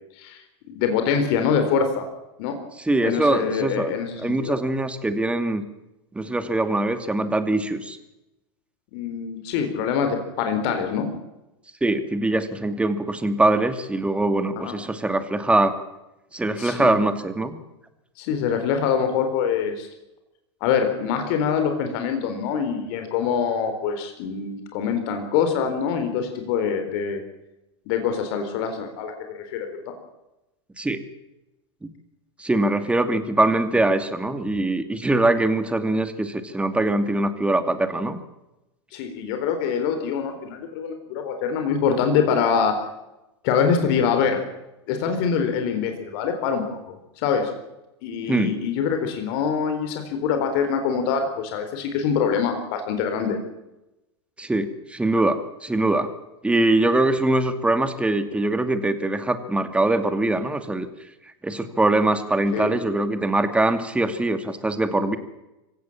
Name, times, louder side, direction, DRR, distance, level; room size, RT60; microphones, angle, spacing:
voice 1, 0.7-2.1 2.4-2.6 3.0-4.6 8.9-11.1 14.6-14.8 16.6-16.9 18.2-19.9 20.6-27.2 27.9-29.7 38.9-42.8 43.4-44.4 44.9-47.5 48.0-53.4 62.5-62.7, left 6 dB, 55° left, 6 dB, 3.9 m, -24 dB
voice 2, 2.8-3.9 4.2-5.6 6.1-8.0 11.8-15.7 16.3-17.6 30.8-31.0 32.4-38.2 48.3-48.5 54.4-56.1 56.4-60.9 61.4-65.2, right 2 dB, 10° right, 9 dB, 2.5 m, -22 dB
25.5 x 16.5 x 7.3 m, 0.95 s
hypercardioid pair, 95°, 15 cm